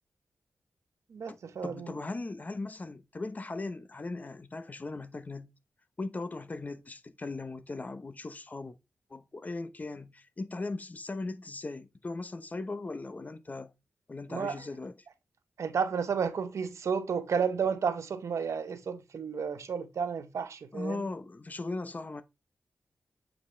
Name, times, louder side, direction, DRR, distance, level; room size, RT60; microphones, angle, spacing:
voice 1, 1.1-1.9 14.3-14.6 15.6-21.0, right 6 dB, 75° right, 0.9 m, -32 dB
voice 2, 1.6-5.5 6.0-8.8 9.1-13.7 14.1-14.9 20.7-22.2, left 3 dB, 30° left, 0.9 m, -38 dB
8.0 x 5.0 x 3.3 m
wide cardioid pair, 100°, 5 cm